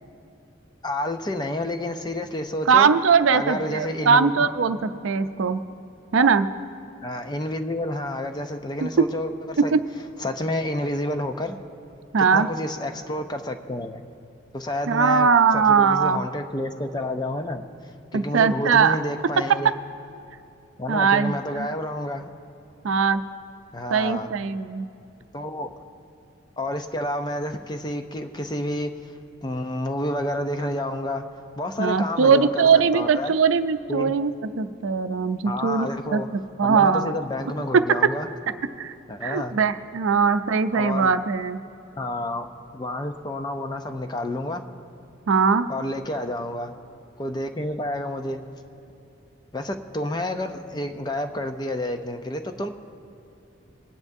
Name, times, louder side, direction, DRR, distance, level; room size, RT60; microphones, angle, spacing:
voice 1, 0.8-2.9 3.3-4.3 7.0-9.8 10.2-11.6 12.2-14.0 14.5-15.3 15.5-17.6 18.1-19.7 20.8-22.3 23.7-24.3 25.3-25.7 26.6-28.9 29.4-31.2 31.6-33.3 33.9-34.1 35.5-36.3 36.6-38.3 39.1-39.6 40.7-41.1 42.0-42.5 42.7-44.6 45.7-46.7 47.2-48.4 49.5-52.7, left 1 dB, 20° left, 6 dB, 0.5 m, -29 dB
voice 2, 2.7-5.6 6.1-6.5 8.8-9.1 9.7-9.8 12.1-12.5 14.9-16.2 18.1-19.0 20.9-21.7 22.8-23.2 23.9-24.9 31.8-34.3 34.6-37.1 37.7-37.8 38.8-38.9 39.2-41.6 45.3-45.7, right 5 dB, 80° right, 10 dB, 0.5 m, -20 dB
24.5 x 9.6 x 2.7 m, 2.8 s
head